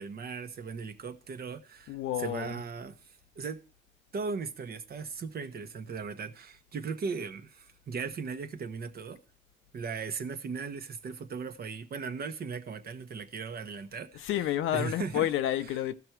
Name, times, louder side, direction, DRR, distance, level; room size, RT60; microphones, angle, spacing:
voice 1, 0.0-3.6 4.1-9.2 9.7-14.3 14.7-15.3, right 5 dB, 50° right, 1.0 m, -38 dB
voice 2, 1.9-2.6 14.1-15.9, left 12 dB, 85° left, 0.6 m, -30 dB
14.0 x 6.1 x 4.6 m
cardioid pair, 90°, 20 cm